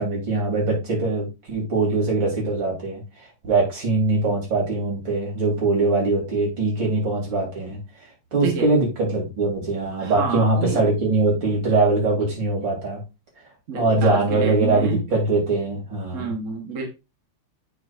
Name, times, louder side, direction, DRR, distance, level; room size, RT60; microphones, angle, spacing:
voice 1, 0.0-3.0 3.4-7.8 8.3-13.0 13.7-16.3, right 3 dB, 65° right, 3.9 m, -22 dB
voice 2, 8.3-8.7 10.0-10.8 13.7-15.0 16.1-16.9, right 5 dB, 45° right, 1.4 m, -29 dB
7.5 x 6.1 x 2.5 m
omnidirectional pair, 2.2 m